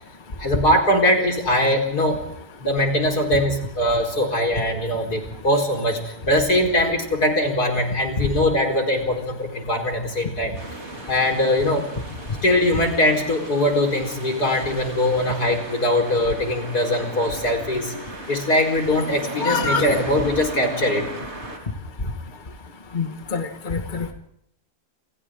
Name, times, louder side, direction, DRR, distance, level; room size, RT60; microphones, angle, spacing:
voice 1, 0.4-2.2 2.6-10.5 11.1-11.9 12.4-17.9 18.3-21.1, left 1 dB, 70° left, 3 dB, 5.2 m, -21 dB
sound 1, 10.5-21.6, right 2 dB, 40° right, 4.6 m, -36 dB
voice 2, 19.4-19.8 22.9-24.1, left 4 dB, 30° left, 4 dB, 1.9 m, -25 dB
29.0 x 28.0 x 3.8 m, 0.78 s
omnidirectional pair, 1.7 m